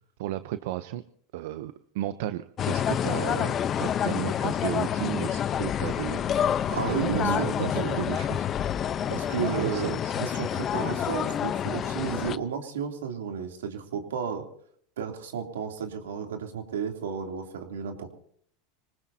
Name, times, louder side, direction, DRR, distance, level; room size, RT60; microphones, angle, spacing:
voice 1, 0.2-1.0 1.3-3.5 3.8-6.6 6.9-8.5 9.4-10.2, right 14 dB, 70° right, 12 dB, 0.8 m, -33 dB
sound 1, 2.6-12.4, left 9 dB, 35° left, 0.9 m, -28 dB
voice 2, 6.7-8.0 9.1-9.9 10.2-14.4 15.0-18.1, right 7 dB, 90° right, 4 dB, 3.2 m, -33 dB
25.5 x 19.5 x 2.9 m, 0.62 s
supercardioid pair, 110°, 0 cm